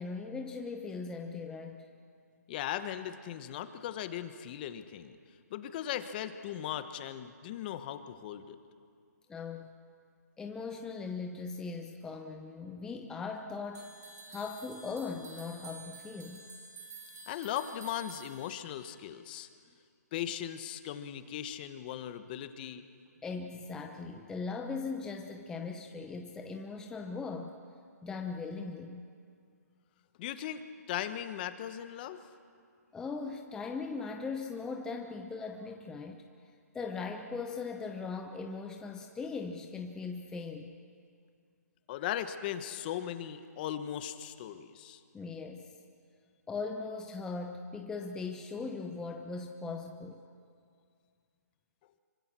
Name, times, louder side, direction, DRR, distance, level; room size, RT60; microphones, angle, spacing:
voice 1, 0.0-1.9 9.3-9.7 10.4-14.0 14.3-16.5 23.2-27.6 28.0-29.1 32.9-36.2 36.7-40.8 45.1-45.7 46.5-50.2, left 4 dB, 5° left, 3 dB, 0.7 m, -39 dB
voice 2, 2.5-5.2 5.5-8.6 17.3-19.5 20.1-22.8 30.2-30.6 30.9-32.2 41.9-45.0, left 11 dB, 30° left, 10 dB, 1.1 m, -38 dB
sound 1, 13.7-19.0, right 3 dB, 65° right, 6.0 m, -50 dB
26.0 x 24.5 x 6.1 m, 2.3 s
hypercardioid pair, 155°, 9 cm